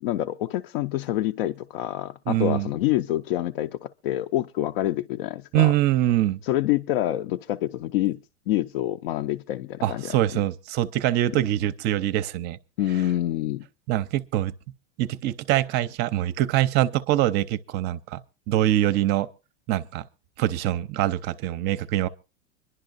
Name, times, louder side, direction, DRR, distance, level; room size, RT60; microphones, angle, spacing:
voice 1, 0.0-5.7 6.4-8.2 8.5-10.1 12.8-13.7, left 14 dB, 65° left, 0.6 m, -27 dB
voice 2, 2.3-2.7 5.5-6.4 9.8-12.6 13.9-14.5 15.0-18.2 18.5-19.3 19.7-20.0 20.4-22.1, right 14 dB, 30° right, 0.6 m, -24 dB
25.5 x 11.5 x 2.5 m
supercardioid pair, 155°, 32 cm